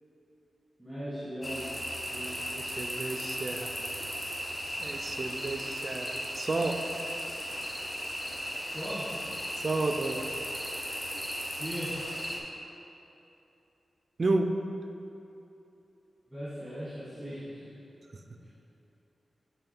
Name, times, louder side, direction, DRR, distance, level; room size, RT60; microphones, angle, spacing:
voice 1, 0.8-1.7 2.1-2.3 8.7-9.1 11.6-11.9 16.3-17.7 18.4-18.5, equal, ahead, -12 dB, 1.4 m, -38 dB
sound 1, 1.4-12.4, equal, 15° left, 0.6 m, -36 dB
voice 2, 2.5-3.7 4.8-6.8 9.6-10.2 14.2-14.5, right 2 dB, 40° right, 5 dB, 0.4 m, -31 dB
8.1 x 3.5 x 4.3 m, 2.9 s
wide cardioid pair, 145°, 0 cm